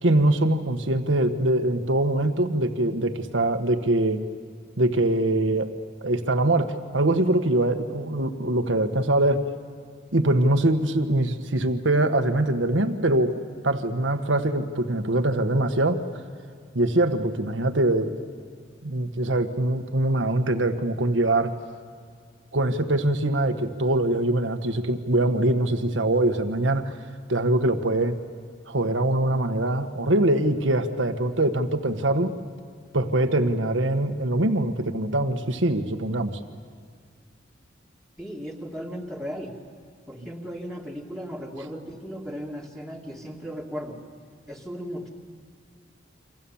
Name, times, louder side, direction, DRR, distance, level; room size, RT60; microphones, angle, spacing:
voice 1, 0.0-4.2 4.8-5.7 6.0-9.4 10.1-13.3 13.6-16.0 16.7-18.1 18.8-21.5 22.5-26.9 27.3-28.2 28.7-32.3 32.9-36.4, right 1 dB, 80° right, 7 dB, 1.5 m, -23 dB
voice 2, 38.2-39.6 40.1-44.0 44.5-45.1, equal, ahead, -1 dB, 2.6 m, -36 dB
29.0 x 26.0 x 7.2 m, 2.1 s
head